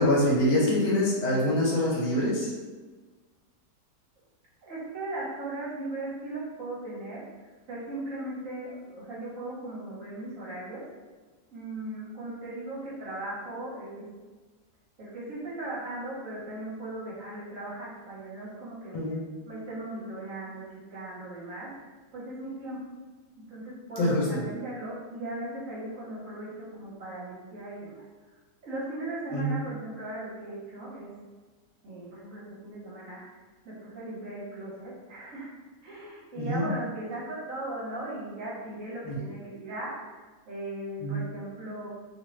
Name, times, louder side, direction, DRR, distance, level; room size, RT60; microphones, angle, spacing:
voice 1, 0.0-2.5 18.9-19.2 24.0-24.5 29.3-29.6 36.4-36.7 39.0-39.2 41.0-41.2, left 1 dB, 85° left, -4 dB, 1.2 m, -25 dB
voice 2, 4.6-7.2 7.7-10.8 11.5-14.0 15.0-19.0 19.5-20.6 20.9-21.7 22.1-22.8 23.5-28.0 28.6-31.1 31.8-33.3 33.6-35.5 35.8-39.9 40.5-41.9, right 1 dB, 60° right, -7 dB, 1.0 m, -38 dB
2.7 x 2.5 x 3.0 m, 1.3 s
omnidirectional pair, 1.7 m